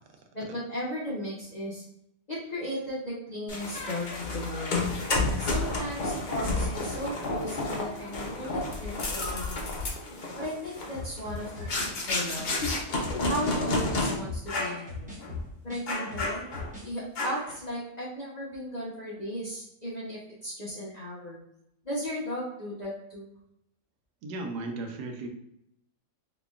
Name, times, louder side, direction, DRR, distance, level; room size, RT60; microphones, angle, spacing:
voice 1, 0.3-1.8 2.3-4.8 5.4-9.8 10.4-11.5 11.8-12.5 13.2-15.2 15.6-16.4 16.8-21.4 21.8-23.3, equal, 35° left, -8 dB, 0.8 m, -36 dB
sound 1, 3.5-14.1 14.5-14.8 15.2-15.3 15.9-16.7 17.2-17.6, left 2 dB, 75° left, 0.4 m, -31 dB
sound 2, 10.9-13.6 13.8-16.9 17.2-17.4, left 3 dB, 10° right, 0.5 m, -39 dB
voice 2, 24.2-25.3, right 2 dB, 80° right, 4 dB, 1.2 m, -35 dB
4.0 x 2.8 x 2.4 m, 0.78 s
omnidirectional pair, 1.7 m